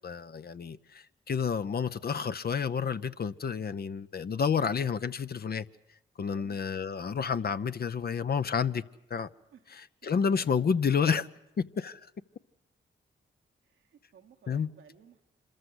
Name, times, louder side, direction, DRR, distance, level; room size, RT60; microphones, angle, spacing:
voice 1, 0.0-5.7 6.2-8.8 9.1-9.3 9.7-11.3 11.6-12.1 14.5-14.7, left 6 dB, 50° left, 0.7 m, -30 dB
voice 2, 6.3-6.6 9.5-9.8 13.6-15.2, right 8 dB, 85° right, 1.4 m, -57 dB
25.5 x 14.0 x 9.7 m
cardioid pair, 55°, 20 cm